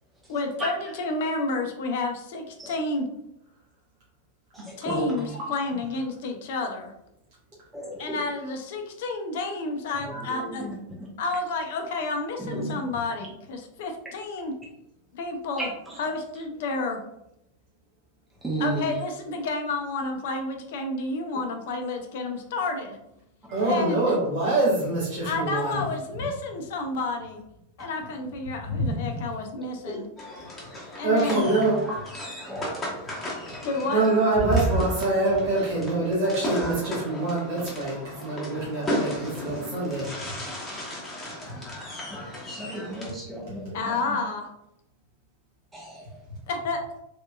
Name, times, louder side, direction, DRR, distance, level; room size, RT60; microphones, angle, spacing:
voice 1, 0.3-3.1 4.8-6.9 8.0-10.7 11.2-14.5 15.1-17.0 18.6-23.0 23.6-24.2 25.2-27.4 27.8-30.1 30.9-31.5 33.6-34.0 43.7-44.5 46.5-46.8, left 3 dB, 55° left, 5 dB, 0.5 m, -30 dB
voice 2, 4.9-5.3 10.1-10.2 23.5-25.8 28.6-29.1 31.0-31.8 33.9-40.1, right 2 dB, 50° right, -6 dB, 1.4 m, -25 dB
voice 3, 7.7-8.2 12.4-12.7 15.6-15.7 18.4-18.8 23.6-23.7 29.1-29.2 32.5-32.8 42.3-43.7 45.7-45.9, right 2 dB, 10° right, -4 dB, 0.7 m, -32 dB
sound 1, 30.2-43.1, left 1 dB, 15° left, 1.1 m, -35 dB
3.4 x 2.6 x 2.2 m, 0.84 s
figure-of-eight pair, 90°, 0 cm